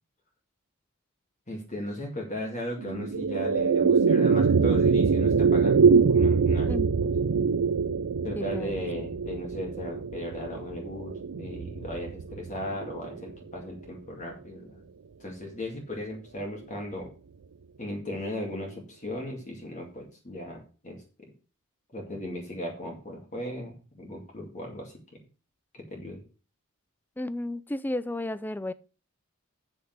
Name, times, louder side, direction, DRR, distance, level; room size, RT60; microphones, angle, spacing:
voice 1, 1.5-5.8 6.1-7.3 8.2-14.9 15.2-17.1 17.8-21.0 21.9-25.2 25.7-26.2, left 1 dB, 35° left, 2.4 m, -37 dB
sound 1, 2.8-13.3, right 5 dB, 85° right, 0.5 m, -24 dB
voice 2, 8.4-8.9 27.2-28.7, left 1 dB, 10° left, 0.4 m, -33 dB
8.0 x 6.8 x 6.1 m
head